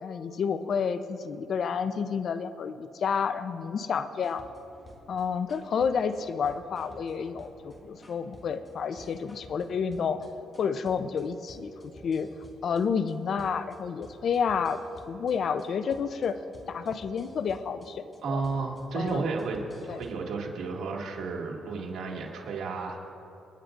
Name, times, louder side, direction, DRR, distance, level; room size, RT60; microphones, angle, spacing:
voice 1, 0.0-4.4 5.1-10.3 10.6-12.3 12.6-14.8 15.1-16.4 16.7-18.0 18.3-18.4 19.0-19.2 19.9-20.0, left 6 dB, 60° left, 11 dB, 0.6 m, -30 dB
sound 1, 4.2-20.1, left 1 dB, 25° left, 2.0 m, -53 dB
voice 2, 18.2-23.1, right 4 dB, 70° right, -1 dB, 2.2 m, -32 dB
27.5 x 10.0 x 2.6 m, 3.0 s
cardioid pair, 90°, 0 cm